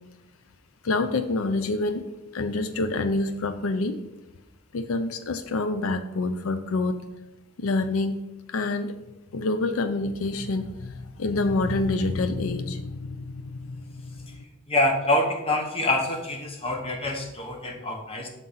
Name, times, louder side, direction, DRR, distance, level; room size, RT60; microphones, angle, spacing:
voice 1, 0.8-2.0 2.3-4.0 4.7-7.0 7.6-8.2 8.5-8.9 9.3-14.2, left 2 dB, 80° left, 9 dB, 0.5 m, -27 dB
voice 2, 14.7-18.3, left 1 dB, 30° left, 3 dB, 1.0 m, -26 dB
7.2 x 3.9 x 5.6 m, 0.97 s
head